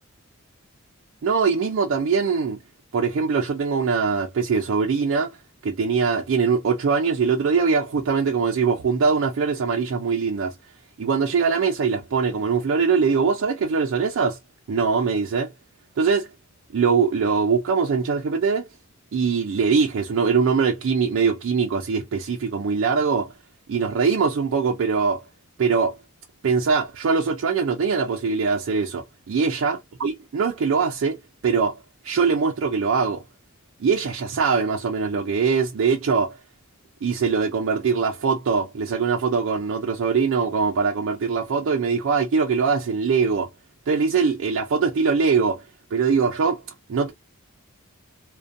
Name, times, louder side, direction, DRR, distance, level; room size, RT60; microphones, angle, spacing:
voice 1, 1.2-2.6 2.9-5.4 5.6-10.6 11.0-14.4 14.7-15.5 16.0-16.3 16.7-18.7 19.1-23.3 23.7-25.2 25.6-25.9 26.4-31.2 31.4-31.8 32.0-33.2 33.8-36.4 37.0-43.5 43.9-45.6 45.9-46.6 46.9-47.1, right 5 dB, 60° right, 0.3 m, -22 dB
2.5 x 2.2 x 2.5 m
head